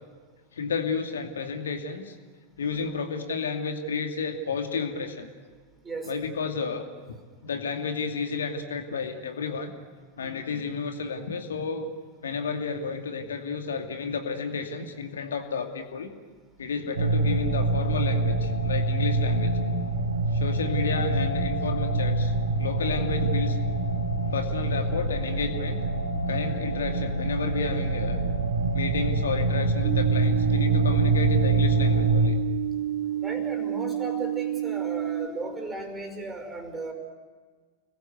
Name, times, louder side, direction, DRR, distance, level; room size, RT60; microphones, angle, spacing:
voice 1, 0.5-2.2 2.6-5.3 6.1-9.7 10.2-11.9 12.2-16.1 16.6-19.5 20.3-22.3 22.6-23.6 24.3-25.8 26.3-28.2 28.7-32.3, left 5 dB, 65° left, 5 dB, 2.4 m, -31 dB
voice 2, 5.8-6.3 10.2-10.6 33.1-36.9, right 3 dB, 15° right, 5 dB, 5.4 m, -36 dB
sound 1, 17.0-32.3, right 3 dB, 70° right, 2.3 m, -25 dB
sound 2, 29.8-35.3, right 12 dB, 40° right, 4.6 m, -29 dB
30.0 x 21.0 x 8.2 m, 1.5 s
figure-of-eight pair, 90°, 0 cm